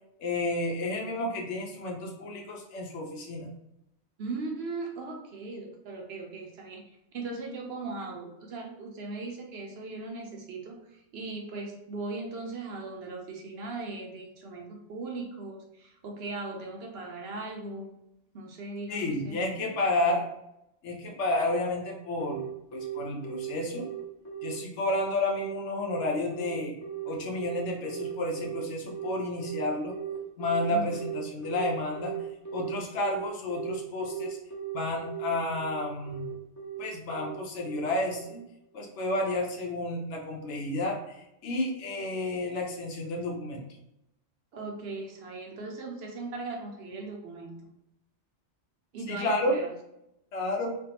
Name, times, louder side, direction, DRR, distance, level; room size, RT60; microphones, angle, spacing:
voice 1, 0.2-3.5 18.9-20.3 20.8-22.4 22.7-23.9 24.4-26.7 27.0-29.9 30.4-32.1 32.5-34.4 34.7-36.3 36.8-38.4 38.7-43.6 49.1-49.6 50.3-50.8, left 2 dB, 80° left, 1 dB, 1.0 m, -31 dB
voice 2, 4.2-6.8 7.1-17.9 18.3-19.4 30.7-31.0 44.5-47.6 48.9-49.7, right 3 dB, 65° right, 1 dB, 0.8 m, -38 dB
Telephone, 22.2-38.4, right 10 dB, 15° left, 0.7 m, -37 dB
3.3 x 2.2 x 2.8 m, 0.82 s
omnidirectional pair, 1.2 m